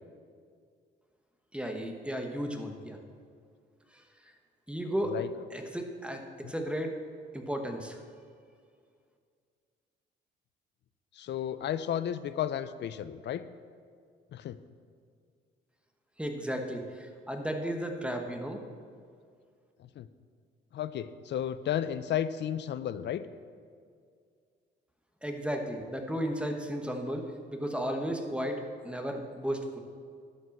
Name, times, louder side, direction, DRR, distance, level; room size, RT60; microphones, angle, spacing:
voice 1, 1.5-3.0 3.9-4.0 4.7-5.2 5.5-6.9 7.3-8.0 16.2-18.6 25.2-29.8, equal, 5° right, 4 dB, 1.2 m, -34 dB
voice 2, 11.2-13.4 14.3-14.6 20.0-20.1 20.7-23.3, left 10 dB, 65° left, 14 dB, 0.5 m, -33 dB
11.5 x 5.4 x 7.2 m, 2.2 s
cardioid pair, 90°, 20 cm